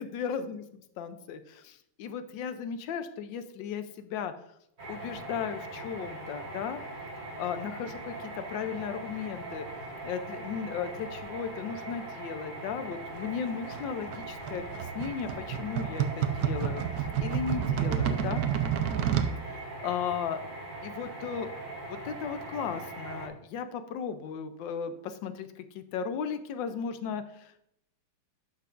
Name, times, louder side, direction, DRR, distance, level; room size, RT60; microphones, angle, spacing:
voice 1, 0.0-4.3 4.9-6.8 7.4-9.7 10.0-16.8 17.2-18.4 19.5-20.4 20.8-21.5 21.9-27.6, left 7 dB, 70° left, 10 dB, 1.3 m, -36 dB
sound 1, 4.8-23.3, right 2 dB, 25° right, 1.2 m, -41 dB
sound 2, 13.7-19.3, right 9 dB, 75° right, 0.8 m, -30 dB
11.5 x 5.7 x 2.5 m, 0.76 s
omnidirectional pair, 2.3 m